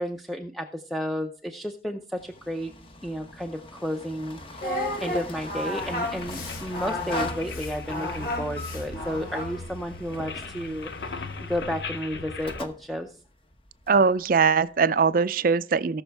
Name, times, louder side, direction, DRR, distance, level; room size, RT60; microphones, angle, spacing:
voice 1, 0.0-2.7 3.0-13.2, equal, ahead, 0.5 m, -32 dB
sound 1, 2.2-15.2, left 2 dB, 30° left, 0.9 m, -43 dB
Singing, 4.6-9.7, left 1 dB, 50° left, 2.4 m, -32 dB
sound 2, 5.8-12.6, left 3 dB, 70° left, 0.8 m, -39 dB
voice 2, 13.9-16.0, right 5 dB, 50° right, 0.4 m, -21 dB
18.0 x 6.2 x 3.4 m
head